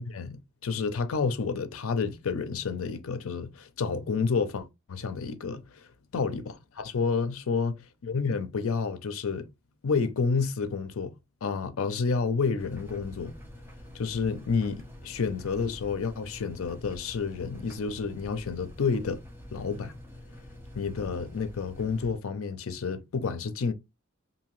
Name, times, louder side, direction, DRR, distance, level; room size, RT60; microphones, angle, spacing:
voice 1, 0.0-9.5 9.8-13.4 13.9-19.2 19.5-20.0 20.7-23.7, left 5 dB, 70° left, 0.5 m, -30 dB
sound 1, 12.6-22.1, left 1 dB, 10° right, 0.6 m, -46 dB
2.7 x 2.6 x 3.0 m
head